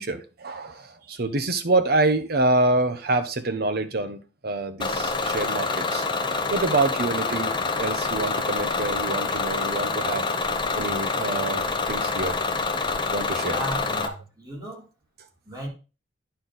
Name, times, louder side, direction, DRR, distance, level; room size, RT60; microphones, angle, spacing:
voice 1, 0.0-6.1 6.5-10.2 10.7-12.4 13.1-13.6 14.1-14.2, right 2 dB, 60° right, 0.9 m, -26 dB
Bus / Engine, 4.8-14.1, left 4 dB, 25° left, 0.8 m, -26 dB
voice 2, 13.4-14.8 15.4-15.7, equal, 20° right, 3.7 m, -35 dB
9.7 x 4.6 x 3.8 m
head